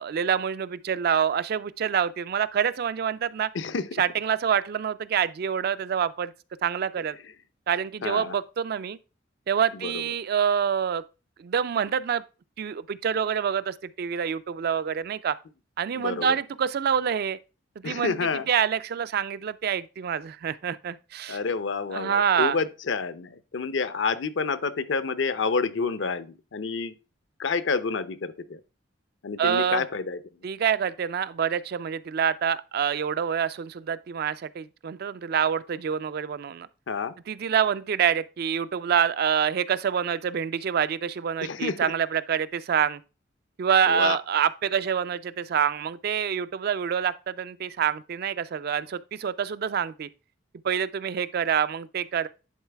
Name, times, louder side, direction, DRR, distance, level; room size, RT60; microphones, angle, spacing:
voice 1, 0.0-3.5 4.0-6.3 6.6-7.2 7.7-9.0 9.5-11.0 11.4-12.2 12.6-15.4 15.8-17.4 17.8-18.2 18.5-21.4 21.9-22.6 29.4-29.8 30.4-36.7 37.3-43.0 43.6-50.1 50.6-52.3, right 8 dB, 55° right, 0.3 m, -26 dB
voice 2, 3.5-4.0 8.0-8.4 9.8-10.0 15.9-16.4 17.8-18.5 21.3-26.9 27.4-28.6 29.2-30.2 36.9-37.1 41.4-41.8 43.9-44.2, left 4 dB, 70° left, 0.6 m, -29 dB
10.5 x 4.0 x 3.3 m
head